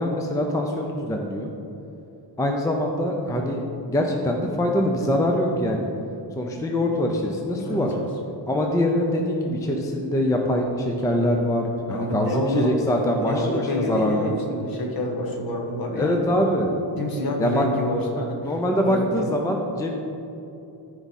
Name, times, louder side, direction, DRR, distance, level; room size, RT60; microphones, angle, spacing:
voice 1, 0.0-1.5 2.4-3.6 3.9-5.9 6.4-7.9 8.5-14.3 16.0-16.7 17.4-17.6 18.4-19.9, left 1 dB, 10° left, 2 dB, 0.4 m, -23 dB
voice 2, 7.6-8.1 11.9-12.7 13.2-16.2 17.0-18.5 18.8-19.1, left 1 dB, 50° left, 1 dB, 1.4 m, -28 dB
13.5 x 4.7 x 4.1 m, 2.8 s
wide cardioid pair, 175°, 45 cm